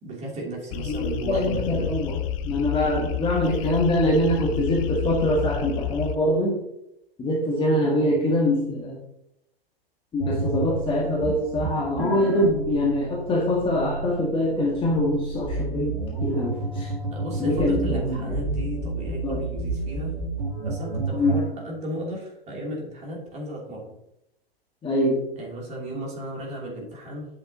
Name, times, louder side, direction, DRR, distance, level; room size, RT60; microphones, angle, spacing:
voice 1, 0.0-1.9 17.1-20.1 20.6-23.9 25.4-27.3, right 1 dB, 20° right, -2 dB, 2.9 m, -34 dB
sound 1, 0.7-6.2, left 10 dB, 35° left, 0.5 m, -30 dB
voice 2, 0.9-2.2 2.4-6.6 7.2-9.0 10.1-16.9 17.4-18.4 19.2-19.4 21.1-21.4 24.8-25.2, left 1 dB, 15° left, -3 dB, 1.7 m, -24 dB
sound 2, 10.2-21.5, right 3 dB, 85° right, 2.8 m, -30 dB
8.7 x 6.5 x 2.8 m, 0.82 s
figure-of-eight pair, 110°, 31 cm